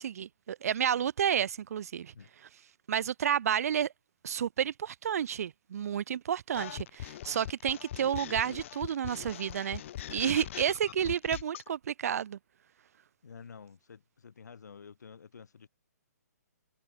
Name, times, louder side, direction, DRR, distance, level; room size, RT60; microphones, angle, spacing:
voice 1, 0.0-2.1 2.9-3.9 4.2-9.8 10.1-12.4, right 9 dB, 60° right, 0.8 m, -31 dB
sound 1, 6.5-11.7, left 12 dB, 45° left, 2.8 m, -41 dB
voice 2, 13.2-15.7, left 6 dB, 80° left, 3.6 m, -50 dB
hypercardioid pair, 150°, 9 cm